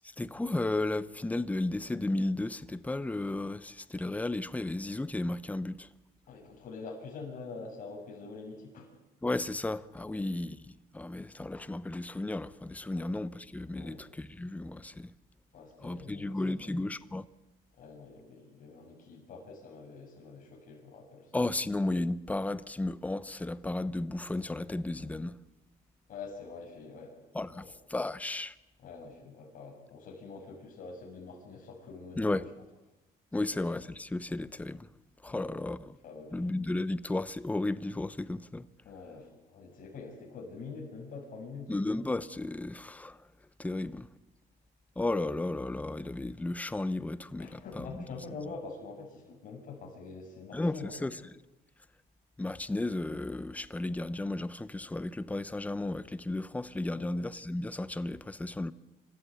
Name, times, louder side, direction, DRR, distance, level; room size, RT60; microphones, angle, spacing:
voice 1, 0.2-5.9 9.2-10.7 10.9-15.1 15.8-17.2 21.3-25.4 27.3-28.5 32.2-32.5 33.3-34.9 35.2-36.0 36.3-38.7 41.7-43.2 43.6-44.1 45.0-48.0 50.5-50.8 51.0-51.1 52.4-58.7, left 2 dB, 10° left, 0.7 m, -34 dB
voice 2, 6.3-8.9 10.0-10.2 12.9-13.1 13.7-14.0 15.5-16.8 17.8-21.3 26.1-27.2 27.5-27.7 28.8-32.4 33.3-33.5 35.3-35.5 36.0-36.4 38.8-41.7 47.4-50.9 56.9-57.2, left 4 dB, 55° left, 6.9 m, -45 dB
26.5 x 14.0 x 8.4 m
cardioid pair, 110°, 17 cm